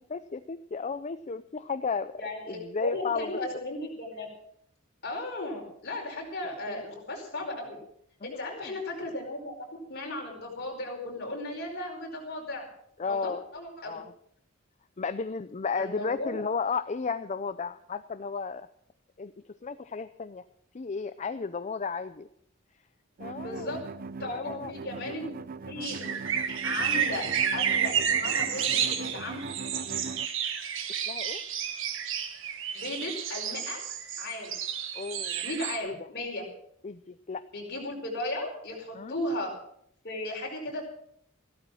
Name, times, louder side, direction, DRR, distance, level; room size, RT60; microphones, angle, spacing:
voice 1, 0.1-2.1 2.5-3.4 6.7-6.8 8.2-8.8 13.0-13.5 13.9-14.1 15.0-18.7 19.2-19.3 19.6-20.4 20.7-22.3 23.2-23.8 24.2-24.7 31.1-31.4 34.9-35.4 35.8-35.9 36.8-37.4 38.9-39.1, left 5 dB, 35° left, 11 dB, 0.5 m, -33 dB
voice 2, 2.2-4.3 5.0-7.8 8.2-9.5 9.9-12.6 13.0-14.0 15.7-16.3 23.4-23.8 24.2-25.4 25.7-26.2 26.6-29.4 32.7-33.8 34.2-34.6 35.4-36.4 37.5-39.5 40.0-40.8, left 1 dB, 55° left, 0 dB, 4.9 m, -36 dB
sound 1, 23.2-30.3, right 4 dB, 45° right, 0.5 m, -40 dB
sound 2, 25.8-35.8, right 8 dB, 65° right, 1.4 m, -31 dB
15.0 x 12.5 x 6.2 m, 0.70 s
head